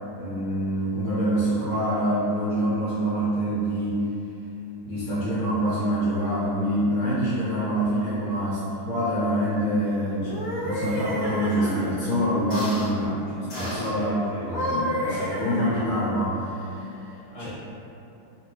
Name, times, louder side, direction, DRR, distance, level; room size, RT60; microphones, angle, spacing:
voice 1, 0.2-4.0 4.8-14.1 14.4-16.9 17.4-17.5, equal, 80° left, -11 dB, 1.6 m, -26 dB
sound 1, 10.2-11.9 12.5-12.9 13.5-13.9 14.4-16.1, equal, 50° left, 1.3 m, -30 dB
voice 2, 13.5-15.3 17.0-17.5, left 1 dB, 25° left, -13 dB, 0.9 m, -37 dB
3.0 x 2.9 x 3.1 m, 2.8 s
omnidirectional pair, 2.3 m